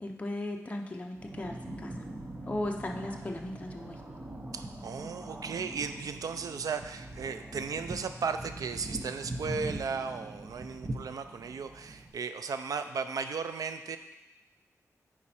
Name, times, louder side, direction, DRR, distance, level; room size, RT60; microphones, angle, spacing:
voice 1, 0.0-1.9 2.5-4.0, left 1 dB, 20° left, 1 dB, 0.7 m, -36 dB
sound 1, 1.1-12.1, right 1 dB, 30° right, 0.8 m, -42 dB
voice 2, 4.5-14.0, right 5 dB, 85° right, 9 dB, 0.5 m, -35 dB
9.4 x 4.4 x 4.3 m, 1.1 s
wide cardioid pair, 125°, 6 cm